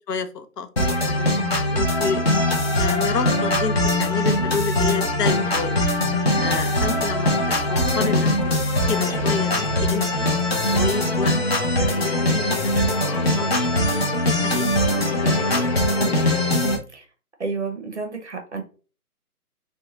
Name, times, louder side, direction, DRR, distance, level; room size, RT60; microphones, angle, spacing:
voice 1, 0.1-0.7 1.1-2.2 2.7-5.8 6.4-8.3 8.9-10.3 10.7-11.3 11.8-12.7 13.0-13.6 14.3-15.6, left 5 dB, 85° left, 9 dB, 0.7 m, -29 dB
sound 1, 0.8-16.8, left 1 dB, 45° left, 0.5 m, -21 dB
voice 2, 17.4-18.6, right 4 dB, 50° right, 4 dB, 0.5 m, -30 dB
2.5 x 2.2 x 2.9 m, 0.36 s
hypercardioid pair, 170°, 47 cm